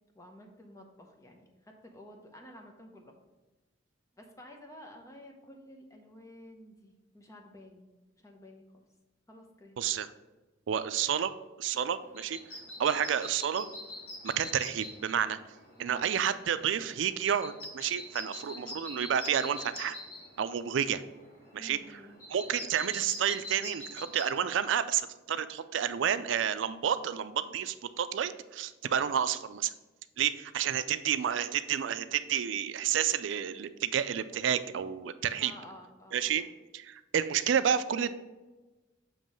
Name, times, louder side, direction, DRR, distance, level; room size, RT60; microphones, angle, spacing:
voice 1, 0.1-3.1 4.1-7.9 8.2-8.6 9.3-9.9 15.8-16.0 18.4-18.7 21.5-22.2 35.3-36.5, left 1 dB, 15° left, 2 dB, 0.8 m, -52 dB
voice 2, 9.8-10.1 10.7-11.3 11.6-12.4 12.8-13.7 14.2-15.4 15.8-20.0 20.4-21.0 21.5-21.8 22.3-29.7 30.2-35.5 36.1-36.4 36.7-38.1, right 8 dB, 75° right, 13 dB, 0.4 m, -30 dB
sound 1, 11.8-24.2, left 1 dB, 55° left, 1.7 m, -46 dB
7.2 x 3.0 x 5.3 m, 1.1 s
head